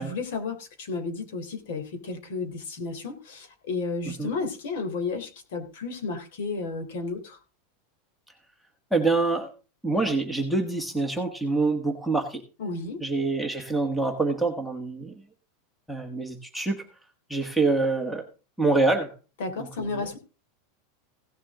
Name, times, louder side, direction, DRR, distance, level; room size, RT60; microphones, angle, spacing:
voice 1, 0.0-7.4 12.6-13.0 19.4-20.2, left 4 dB, 65° left, 6 dB, 3.5 m, -32 dB
voice 2, 8.9-9.5 9.8-12.4 13.0-15.1 15.9-16.8 17.3-18.2 18.6-19.1 19.6-20.1, right 3 dB, ahead, 6 dB, 1.5 m, -26 dB
17.0 x 7.4 x 3.7 m, 0.33 s
supercardioid pair, 165°, 0 cm